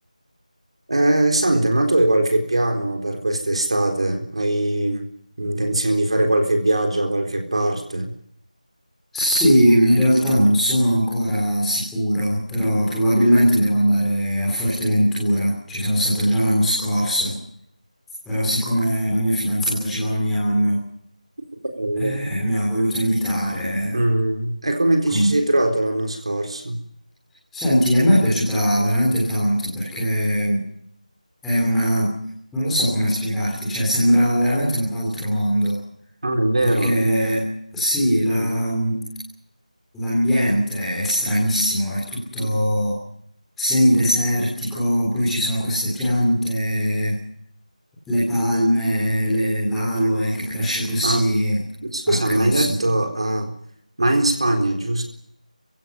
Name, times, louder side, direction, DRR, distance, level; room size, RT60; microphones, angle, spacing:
voice 1, 0.9-5.0 5.4-8.1 21.8-22.2 23.9-26.8 36.2-37.0 38.2-38.6 42.4-42.5 51.0-51.2 51.9-53.5 54.0-55.0, right 1 dB, 45° right, 4 dB, 4.1 m, -21 dB
voice 2, 9.1-17.4 18.2-20.8 21.9-24.0 25.1-25.3 27.5-30.6 31.4-32.1 32.5-35.8 36.6-37.5 37.7-39.0 39.9-43.0 43.6-47.2 48.1-51.6 52.1-52.7, equal, ahead, -9 dB, 3.6 m, -20 dB
29.0 x 16.0 x 9.6 m, 0.69 s
figure-of-eight pair, 175°, 4 cm